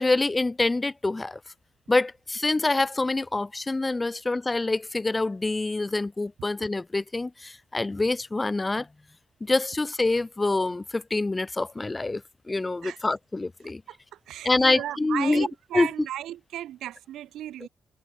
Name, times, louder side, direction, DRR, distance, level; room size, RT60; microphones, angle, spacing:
voice 1, 0.0-1.4 1.9-8.9 9.4-12.2 12.5-13.8 14.4-15.5 15.7-15.9, left 2 dB, 25° left, 1.3 m, -26 dB
voice 2, 13.9-17.7, right 12 dB, 80° right, 6.4 m, -35 dB
supercardioid pair, 55°, 0 cm